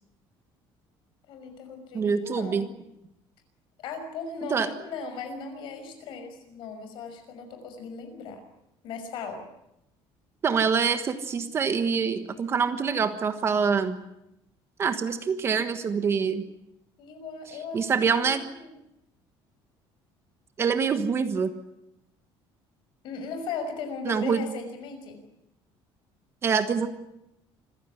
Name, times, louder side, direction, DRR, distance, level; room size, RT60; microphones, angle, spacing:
voice 1, 1.3-2.8 3.8-8.4 8.8-9.4 17.0-17.9 18.2-18.8 23.0-25.2, left 4 dB, 55° left, 7 dB, 5.8 m, -37 dB
voice 2, 1.9-2.7 4.5-4.7 10.4-14.0 14.8-16.5 17.7-18.4 20.6-21.5 24.0-24.5 26.4-26.9, right 6 dB, 25° right, 9 dB, 1.4 m, -25 dB
26.5 x 15.5 x 10.0 m, 0.86 s
cardioid pair, 180°, 10 cm